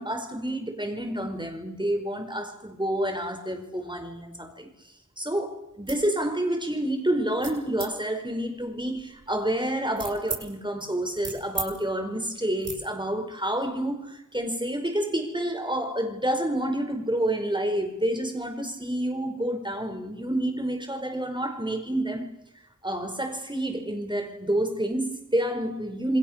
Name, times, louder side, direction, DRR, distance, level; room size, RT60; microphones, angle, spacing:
voice 1, 0.0-4.7 5.2-22.4 22.8-26.2, right 1 dB, 15° right, 5.3 m, -29 dB
sound 1, 5.7-6.1 6.5-6.9 7.4-7.9 8.6-10.4 10.8-11.7 12.0-12.2 12.6-12.8, right 3 dB, 90° right, 7.4 m, -37 dB
29.0 x 21.0 x 6.8 m
wide cardioid pair, 60°, 30 cm